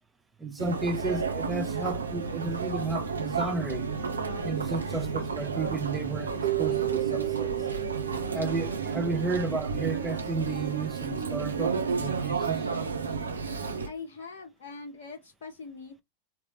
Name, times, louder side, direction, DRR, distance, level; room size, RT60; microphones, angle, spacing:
voice 1, 0.4-3.9 4.4-7.5 8.3-12.7, right 3 dB, 10° right, 0.7 m, -33 dB
Chatter, 0.6-13.9, right 5 dB, 75° right, 0.8 m, -32 dB
Keyboard (musical), 6.4-9.7, right 20 dB, 50° right, 0.5 m, -32 dB
voice 2, 13.9-16.0, left 4 dB, 55° left, 0.7 m, -42 dB
3.9 x 2.9 x 3.1 m
figure-of-eight pair, 90°, 0 cm